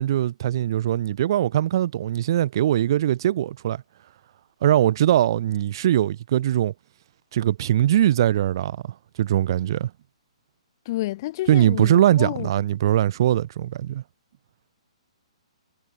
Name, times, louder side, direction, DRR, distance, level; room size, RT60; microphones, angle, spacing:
voice 1, 0.0-3.8 4.6-6.7 7.3-8.8 9.2-9.9 11.5-14.0, right 12 dB, 40° right, 0.5 m, -21 dB
voice 2, 10.8-12.5, left 17 dB, 35° left, 0.9 m, -30 dB
figure-of-eight pair, 125°, 3 cm